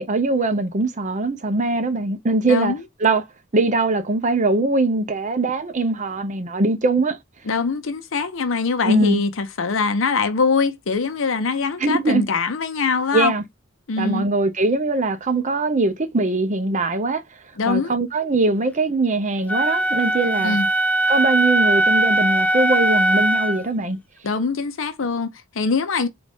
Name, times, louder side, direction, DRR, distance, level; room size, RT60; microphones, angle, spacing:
voice 1, 0.0-3.3 3.5-7.2 8.8-9.2 11.8-12.3 13.1-13.4 14.0-17.2 17.7-20.6 21.1-24.0, right 2 dB, 40° right, 0.7 m, -21 dB
voice 2, 2.5-2.8 7.5-13.3 13.9-14.3 17.6-17.9 20.3-20.7 24.2-26.1, left 4 dB, 70° left, 0.6 m, -23 dB
Wind instrument woodwind instrument, 19.5-23.6, right 1 dB, 5° left, 0.4 m, -20 dB
4.0 x 2.5 x 3.4 m
head